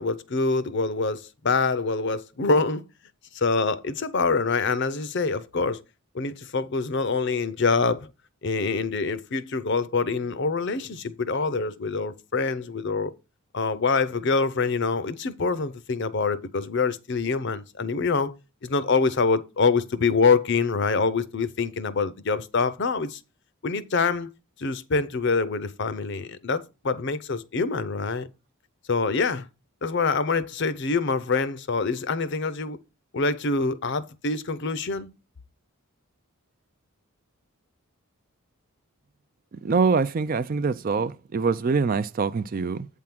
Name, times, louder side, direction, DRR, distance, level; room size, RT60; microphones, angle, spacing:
voice 1, 0.0-2.8 3.3-5.8 6.1-8.1 8.4-13.1 13.5-18.3 18.6-23.2 23.6-24.3 24.6-28.3 28.9-29.5 29.8-32.8 33.1-35.1, left 4 dB, 50° left, 0.6 m, -25 dB
voice 2, 39.6-42.9, right 4 dB, 40° right, 0.3 m, -24 dB
8.5 x 3.6 x 5.9 m
head